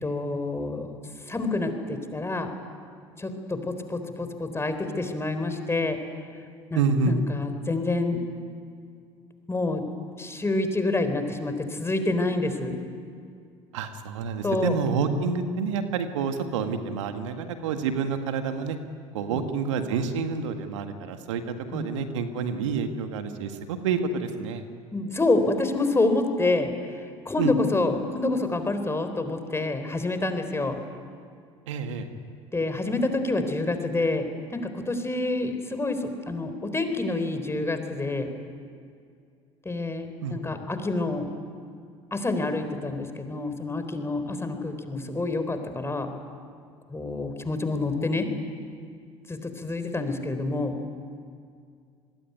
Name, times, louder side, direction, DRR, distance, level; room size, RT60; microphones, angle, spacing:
voice 1, 0.0-0.9 1.3-2.5 3.2-6.0 6.7-6.8 7.1-8.2 9.5-9.8 10.2-12.7 14.4-14.8 19.3-19.5 21.7-21.9 24.9-26.7 27.3-30.8 32.5-38.3 39.7-41.3 42.1-46.1 46.9-48.3 49.3-50.8, left 2 dB, 15° left, 8 dB, 3.9 m, -27 dB
voice 2, 6.7-7.2 13.7-18.8 19.1-24.6 27.4-27.5 31.7-32.1 40.2-40.4, right 5 dB, 75° right, 7 dB, 1.9 m, -28 dB
26.0 x 20.5 x 9.6 m, 2.3 s
hypercardioid pair, 70°, 16 cm